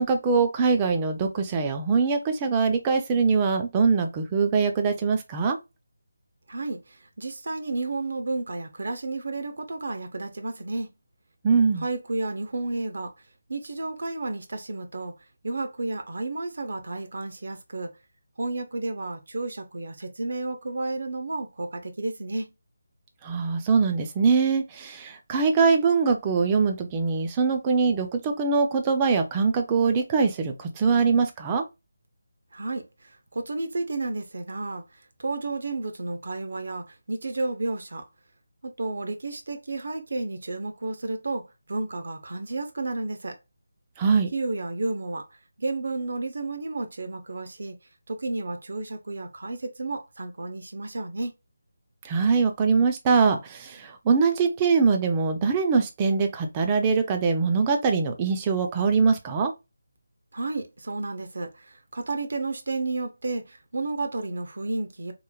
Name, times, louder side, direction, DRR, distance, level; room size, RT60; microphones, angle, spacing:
voice 1, 0.0-5.6 11.4-11.8 23.2-31.6 44.0-44.3 52.0-59.5, right 5 dB, 15° right, 0.4 m, -23 dB
voice 2, 6.5-10.9 11.8-13.1 13.5-15.1 15.4-17.9 18.4-22.5 32.5-38.1 38.6-43.4 44.3-47.7 48.1-51.3 60.3-65.1, right 2 dB, 60° right, 0.6 m, -32 dB
3.0 x 2.1 x 2.2 m
figure-of-eight pair, 165°, 0 cm